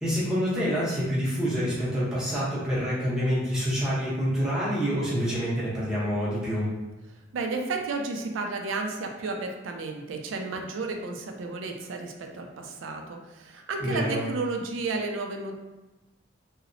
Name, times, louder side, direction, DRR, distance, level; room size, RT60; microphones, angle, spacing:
voice 1, 0.0-6.7 13.8-14.2, equal, 5° right, -9 dB, 0.8 m, -27 dB
voice 2, 7.3-15.5, right 3 dB, 80° right, 3 dB, 0.4 m, -32 dB
2.8 x 2.0 x 2.5 m, 1.0 s
head